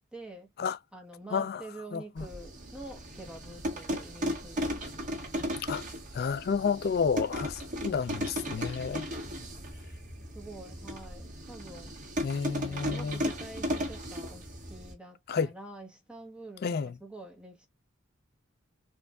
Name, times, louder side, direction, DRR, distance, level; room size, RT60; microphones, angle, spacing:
voice 1, 0.1-0.5 0.9-4.9 9.1-9.7 10.3-11.9 12.6-17.7, right 2 dB, 5° right, 1.1 m, -47 dB
voice 2, 1.3-1.6 1.9-2.3 5.6-5.8 6.1-9.1 12.2-13.2 15.3-15.5 16.6-16.9, left 5 dB, 50° left, 0.4 m, -30 dB
sound 1, 2.2-14.9, equal, 40° right, 1.5 m, -36 dB
4.4 x 2.6 x 2.3 m
head